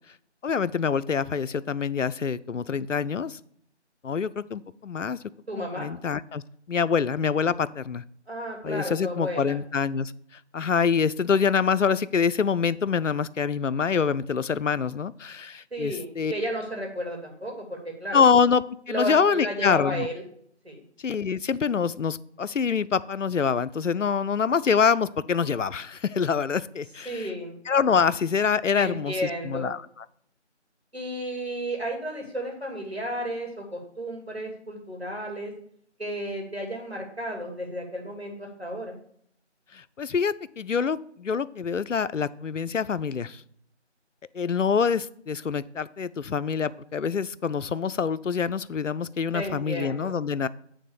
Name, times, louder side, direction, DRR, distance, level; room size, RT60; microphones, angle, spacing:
voice 1, 0.4-3.4 4.0-5.2 5.5-6.4 6.7-8.0 8.6-10.1 10.5-16.3 18.1-20.1 21.0-27.3 27.7-29.1 29.5-29.8 39.7-43.4 44.3-50.5, left 6 dB, 90° left, 16 dB, 0.5 m, -25 dB
voice 2, 5.5-5.9 8.3-9.6 15.7-18.2 18.9-20.2 20.6-20.8 27.1-27.5 28.7-29.7 30.9-35.5 36.0-39.0 49.3-50.2, equal, 60° right, 0 dB, 2.5 m, -33 dB
9.2 x 3.6 x 6.7 m, 0.65 s
figure-of-eight pair, 180°, 36 cm